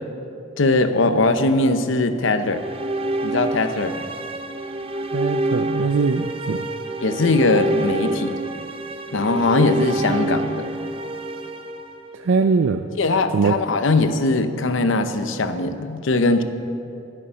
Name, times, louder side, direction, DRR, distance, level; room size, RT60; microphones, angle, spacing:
voice 1, 0.6-2.6 3.2-4.1 7.0-8.3 9.1-10.6 13.0-16.4, left 2 dB, 70° left, 9 dB, 0.7 m, -20 dB
sound 1, 2.3-12.5, right 1 dB, 30° right, 0.5 m, -27 dB
voice 2, 5.1-6.6 12.1-12.9 13.3-13.6, right 4 dB, 75° right, 9 dB, 0.4 m, -21 dB
11.5 x 11.0 x 5.7 m, 2.7 s
head